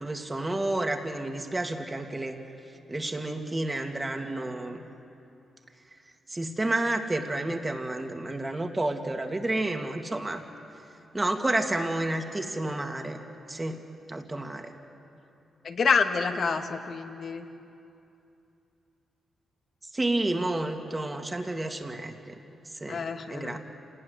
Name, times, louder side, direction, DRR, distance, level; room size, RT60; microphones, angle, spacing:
voice 1, 0.0-2.4 2.9-4.8 6.3-10.4 11.1-13.2 13.5-13.8 14.1-14.7 19.9-22.4 22.8-23.6, right 2 dB, 20° right, 4 dB, 2.5 m, -30 dB
voice 2, 15.6-17.5 22.9-23.6, left 5 dB, 55° left, 5 dB, 2.0 m, -27 dB
27.5 x 19.5 x 9.9 m, 2.7 s
cardioid pair, 85°, 0 cm